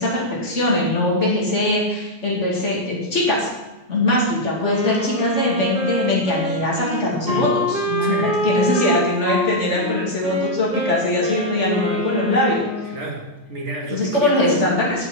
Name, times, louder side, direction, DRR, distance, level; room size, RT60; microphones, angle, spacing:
voice 1, 0.0-3.5 3.9-12.6 13.9-15.1, left 1 dB, 85° left, -4 dB, 2.6 m, -21 dB
Wind instrument woodwind instrument, 4.6-13.0, equal, 5° right, 1.8 m, -25 dB
voice 2, 8.0-8.4 12.8-14.7, right 2 dB, 75° right, -1 dB, 2.2 m, -30 dB
15.0 x 5.4 x 4.2 m, 1.0 s
omnidirectional pair, 1.2 m